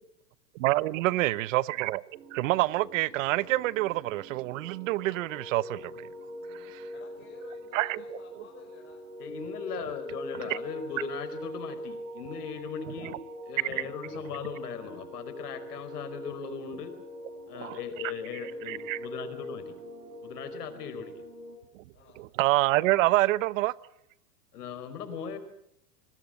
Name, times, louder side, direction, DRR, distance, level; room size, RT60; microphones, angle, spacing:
voice 1, 0.6-2.0 2.3-6.1 6.5-6.9 7.7-8.0 12.9-13.1 13.6-13.9 17.5-17.8 18.7-19.0 21.7-21.8 22.2-23.7, right 18 dB, 55° right, 1.0 m, -27 dB
sound 1, 2.1-21.6, equal, 85° right, 6.3 m, -43 dB
voice 2, 6.9-9.1 17.4-17.7 20.5-20.6 21.9-22.3, left 6 dB, 25° left, 5.2 m, -53 dB
voice 3, 9.2-13.2 13.5-16.9 17.5-19.7 20.2-21.2 24.5-25.4, left 6 dB, 85° left, 4.8 m, -38 dB
26.5 x 21.0 x 7.8 m
supercardioid pair, 145°, 46 cm